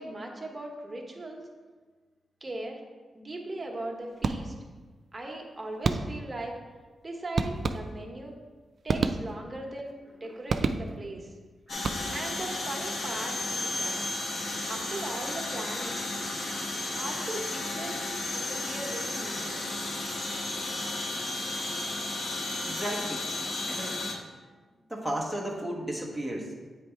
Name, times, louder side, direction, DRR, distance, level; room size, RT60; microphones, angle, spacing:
voice 1, 0.0-1.4 2.4-2.8 3.1-4.5 5.1-6.5 7.0-8.3 8.8-11.3 12.1-14.0 14.7-16.0 17.0-19.8, right 2 dB, 25° right, 0 dB, 1.1 m, -39 dB
sound 1, 4.2-4.8 5.8-6.4 7.4-8.2 8.9-9.6 10.5-11.2 11.7-12.4, right 4 dB, 60° right, 0.3 m, -30 dB
sound 2, 11.7-24.1, left 2 dB, 75° left, 1.0 m, -33 dB
voice 2, 22.6-23.3 23.6-24.0 24.9-26.5, right 1 dB, 5° left, -2 dB, 1.1 m, -35 dB
8.2 x 3.3 x 4.4 m, 1.4 s
cardioid pair, 85°, 0 cm